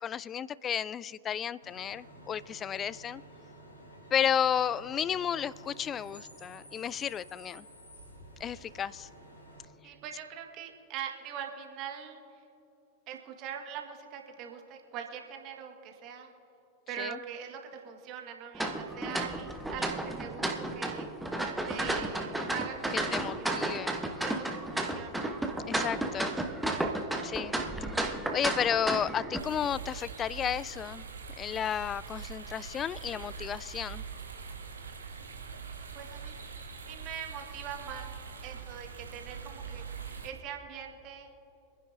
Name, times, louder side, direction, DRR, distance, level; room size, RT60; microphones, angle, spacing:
voice 1, 0.0-3.2 4.1-7.7 8.4-9.1 17.0-17.2 23.1-23.9 25.7-26.4 27.2-27.5 28.0-31.0 31.4-34.0, left 9 dB, 25° left, 21 dB, 0.3 m, -32 dB
Bus / Idling / Screech, 1.6-9.6, equal, 75° left, 3.3 m, -52 dB
voice 2, 9.8-12.2 13.1-16.3 16.9-21.1 21.7-24.0 24.2-25.2 35.9-36.3 36.9-38.1 38.4-39.9 40.2-41.3, right 8 dB, 40° right, 3 dB, 1.7 m, -42 dB
sound 1, 18.6-29.4, right 1 dB, 5° right, 1.1 m, -33 dB
sound 2, 29.4-40.3, right 6 dB, 70° right, 1.4 m, -43 dB
26.5 x 10.0 x 2.8 m, 3.0 s
figure-of-eight pair, 90°, 0 cm